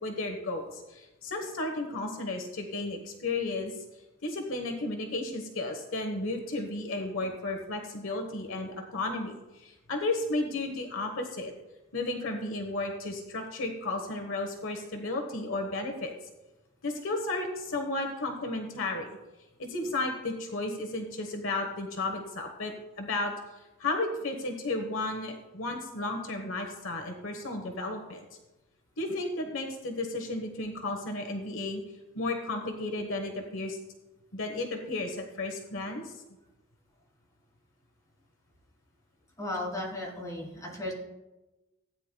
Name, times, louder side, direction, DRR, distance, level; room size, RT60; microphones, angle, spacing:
voice 1, 0.0-3.8 4.2-11.5 11.9-16.1 16.8-19.2 19.6-23.3 23.8-28.3 29.0-31.8 32.1-33.8 34.3-36.1, left 2 dB, 70° left, 3 dB, 1.2 m, -33 dB
voice 2, 39.4-40.9, left 1 dB, 15° left, -3 dB, 3.3 m, -35 dB
17.0 x 9.6 x 2.3 m, 1.1 s
head